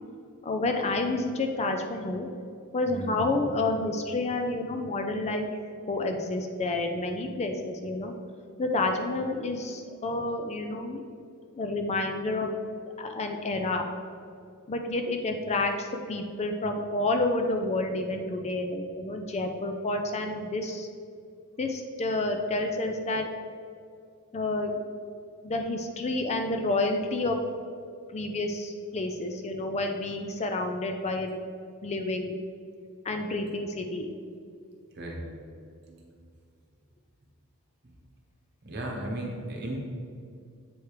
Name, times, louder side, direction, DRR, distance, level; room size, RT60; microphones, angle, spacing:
voice 1, 0.4-2.3 2.7-5.5 5.9-8.1 8.6-11.0 11.5-12.5 13.0-13.9 14.7-20.9 21.6-23.3 24.3-24.7 25.4-27.4 28.1-31.3 31.8-32.3 33.0-34.1, left 2 dB, 30° left, 4 dB, 0.4 m, -29 dB
voice 2, 2.9-3.3 34.9-35.3 35.9-36.1 38.6-39.8, right 1 dB, 50° right, 0 dB, 1.1 m, -35 dB
7.8 x 3.5 x 4.8 m, 2.4 s
head